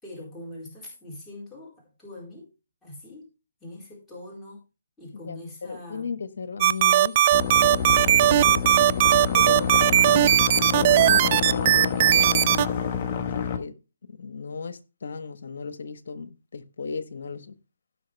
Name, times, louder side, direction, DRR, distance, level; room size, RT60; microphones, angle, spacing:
voice 1, 0.0-2.5 2.8-3.3 3.6-4.6 5.0-6.2, left 1 dB, 5° left, 4.5 m, -42 dB
voice 2, 5.2-7.2 7.8-8.7 9.3-12.4 13.3-17.6, left 5 dB, 65° left, 1.3 m, -36 dB
sound 1, 6.6-12.7, right 12 dB, 35° right, 0.4 m, -18 dB
sound 2, 7.3-13.6, left 7 dB, 35° left, 1.4 m, -28 dB
16.5 x 6.1 x 3.4 m
figure-of-eight pair, 145°, 0 cm